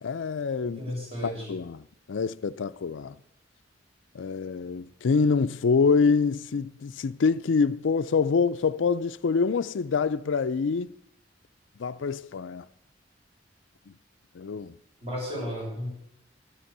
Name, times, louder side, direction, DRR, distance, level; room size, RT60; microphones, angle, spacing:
voice 1, 0.0-0.8 1.2-3.2 4.1-10.9 11.8-12.7 14.3-14.8, left 5 dB, 80° left, 0.4 m, -26 dB
voice 2, 0.8-1.5 15.0-15.9, equal, 30° right, 6.6 m, -33 dB
13.0 x 10.5 x 6.7 m
head